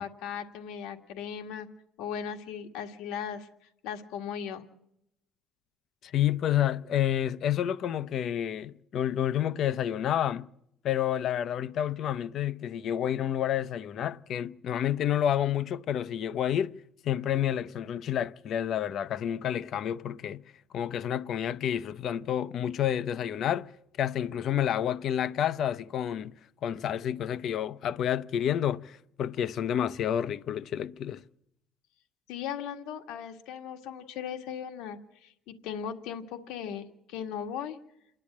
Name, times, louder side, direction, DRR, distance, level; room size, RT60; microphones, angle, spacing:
voice 1, 0.0-1.7 2.0-4.6 32.3-37.8, left 8 dB, 80° left, 1.7 m, -38 dB
voice 2, 6.0-10.5 10.8-16.8 17.0-20.4 20.7-23.7 24.0-26.4 26.6-31.2, left 10 dB, 55° left, 0.7 m, -29 dB
28.0 x 11.0 x 8.6 m
cardioid pair, 115°, 0 cm